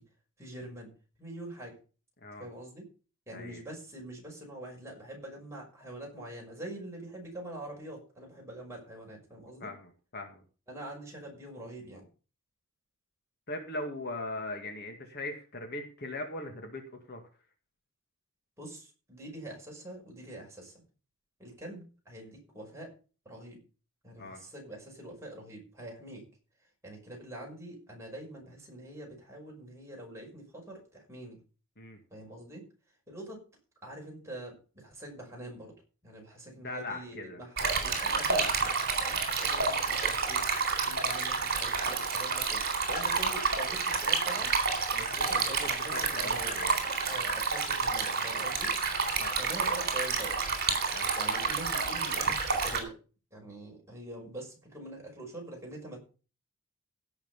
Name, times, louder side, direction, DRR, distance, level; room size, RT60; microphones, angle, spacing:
voice 1, 0.4-0.9 1.2-1.7 2.4-2.8 3.3-9.7 10.7-12.1 18.6-20.8 21.4-22.9 23.3-23.6 24.0-26.2 26.8-31.4 32.1-32.6 33.1-33.4 33.8-35.7 36.0-38.5 39.0-40.5 40.9-44.5 45.1-46.5 47.1-48.7 49.4-50.4 51.2-52.9 53.3-56.0, right 1 dB, 15° right, -1 dB, 5.7 m, -44 dB
voice 2, 3.3-3.6 9.6-10.4 13.5-16.8 17.1-17.2 24.2-24.4 31.8-32.0 36.6-37.4 44.9-45.1 45.3-46.8 49.2-49.8 50.9-51.1, left 2 dB, 50° left, 4 dB, 2.1 m, -40 dB
Stream, 37.6-52.8, right 4 dB, 50° right, 3.9 m, -29 dB
16.5 x 6.1 x 5.5 m, 0.36 s
head